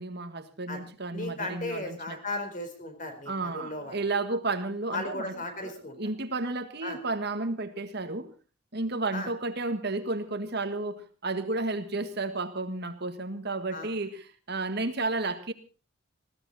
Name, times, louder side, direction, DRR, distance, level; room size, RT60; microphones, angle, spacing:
voice 1, 0.0-2.2 3.3-5.3 5.6-8.3 8.7-15.5, right 3 dB, 50° right, 1.7 m, -32 dB
voice 2, 1.1-4.0 4.9-6.0 6.8-7.0 9.1-9.3 13.7-13.9, left 2 dB, 40° left, 4.3 m, -36 dB
20.5 x 15.5 x 4.2 m
head